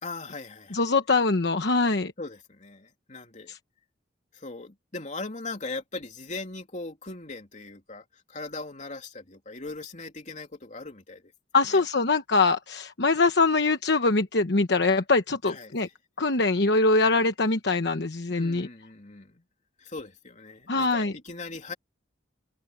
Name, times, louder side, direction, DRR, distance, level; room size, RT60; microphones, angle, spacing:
voice 1, 0.0-0.9 2.2-3.5 4.3-11.3 11.7-11.8 15.4-15.9 18.3-19.4 19.8-21.7, left 3 dB, 40° left, 3.1 m, -39 dB
voice 2, 0.7-2.1 3.5-3.6 11.5-15.9 16.2-18.7 20.7-21.1, left 3 dB, 65° left, 1.1 m, -23 dB
open air
head